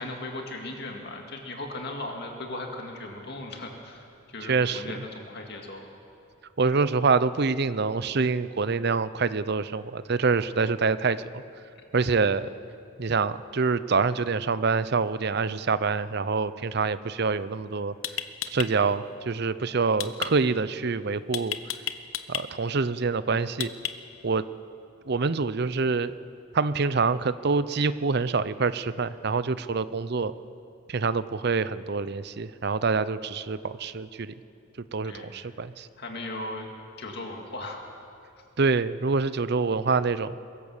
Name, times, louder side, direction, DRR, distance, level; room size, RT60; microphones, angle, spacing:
voice 1, 0.0-4.0 4.3-5.8 35.0-35.3 36.0-36.7 37.0-37.8, left 2 dB, 55° left, 2 dB, 2.1 m, -37 dB
voice 2, 4.4-5.1 6.6-11.4 11.9-12.5 13.0-17.9 18.5-21.6 22.3-23.7 24.2-24.5 25.1-26.1 26.5-30.3 30.9-34.3 34.9-35.9 38.6-40.4, right 4 dB, 50° right, 15 dB, 0.6 m, -26 dB
sound 1, 17.4-17.6 18.0-18.7 20.0-20.3 21.3-22.4 23.6-24.2, left 11 dB, 75° left, 0.9 m, -31 dB
23.5 x 15.5 x 7.2 m, 2.6 s
head